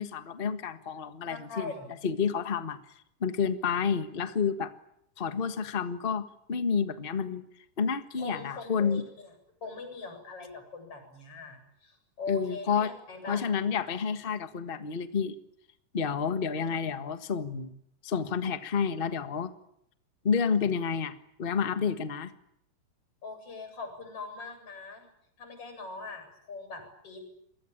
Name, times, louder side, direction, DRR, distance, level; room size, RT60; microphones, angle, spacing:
voice 1, 0.0-1.7 2.0-2.8 3.2-4.7 5.2-7.4 7.8-9.0 12.3-12.9 13.3-15.4 15.9-17.7 18.0-19.5 20.2-22.3, left 6 dB, 75° left, 9 dB, 0.5 m, -30 dB
voice 2, 1.3-1.9 8.2-9.3 9.6-13.4 16.5-16.7 23.2-25.1 25.4-27.2, left 3 dB, 40° left, 6 dB, 8.9 m, -41 dB
29.0 x 22.5 x 8.9 m, 0.74 s
omnidirectional pair, 4.0 m